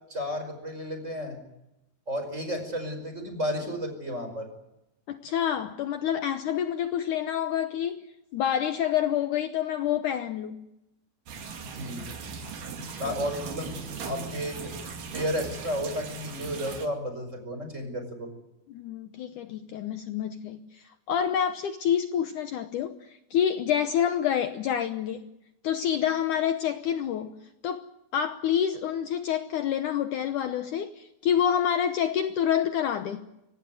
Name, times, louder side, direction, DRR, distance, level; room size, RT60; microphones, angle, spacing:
voice 1, 0.1-1.4 2.1-4.5 11.7-12.0 13.0-13.7 14.0-14.7 15.1-18.3, equal, 20° right, 5.2 m, -32 dB
voice 2, 5.1-10.7 13.0-13.1 18.7-25.3 25.6-27.8 28.1-33.3, left 9 dB, 70° left, 2.2 m, -28 dB
sound 1, 11.3-16.9, right 4 dB, 60° right, 3.9 m, -38 dB
25.5 x 18.5 x 9.4 m
omnidirectional pair, 4.3 m